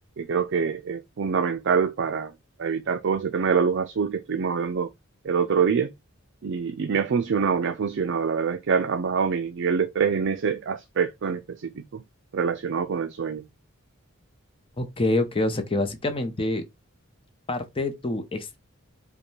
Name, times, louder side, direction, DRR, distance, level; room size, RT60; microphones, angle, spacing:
voice 1, 0.2-2.3 2.6-4.9 5.2-5.9 6.4-12.0 12.3-13.4, right 6 dB, 60° right, 0.4 m, -25 dB
voice 2, 14.8-16.6 17.5-18.6, left 2 dB, 25° left, 0.7 m, -26 dB
5.2 x 2.2 x 3.1 m
head